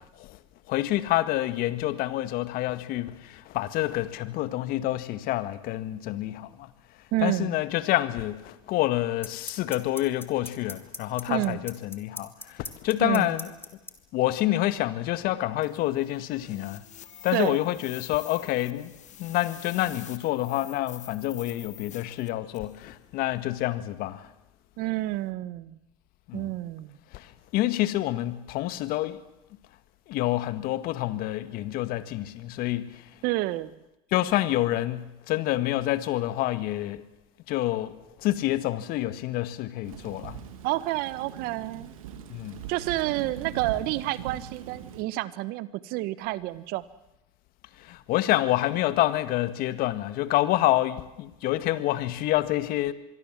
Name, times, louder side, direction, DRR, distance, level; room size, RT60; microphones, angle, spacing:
voice 1, 0.7-6.7 7.2-13.5 14.1-16.8 17.2-18.9 19.2-24.3 26.3-26.4 27.1-29.2 30.1-33.0 34.1-37.0 37.5-40.4 42.3-42.6 47.8-52.9, left 15 dB, 60° left, 1.9 m, -28 dB
voice 2, 7.1-7.5 11.3-11.6 13.0-13.3 17.3-17.6 24.8-25.8 26.3-27.0 33.2-33.7 40.6-41.9 42.7-46.8, right 17 dB, 65° right, 1.5 m, -29 dB
sound 1, 8.1-8.2 9.2-13.9, left 2 dB, 15° left, 3.4 m, -37 dB
sound 2, 15.6-22.8, left 10 dB, 45° left, 2.3 m, -47 dB
Thunder / Rain, 39.8-45.0, right 8 dB, 85° right, 3.0 m, -41 dB
25.5 x 22.5 x 7.6 m
hypercardioid pair, 90°, 17 cm